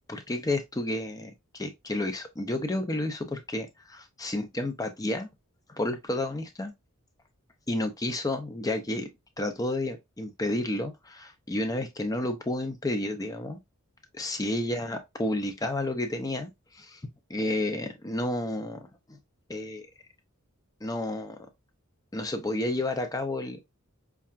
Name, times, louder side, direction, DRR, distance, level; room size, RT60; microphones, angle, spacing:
voice 1, 0.1-5.3 5.7-6.7 7.7-9.1 9.4-13.6 14.1-17.0 17.3-18.8 19.5-19.9 20.8-21.4 22.1-23.7, left 1 dB, 15° left, 0.5 m, -31 dB
5.5 x 2.3 x 2.3 m
head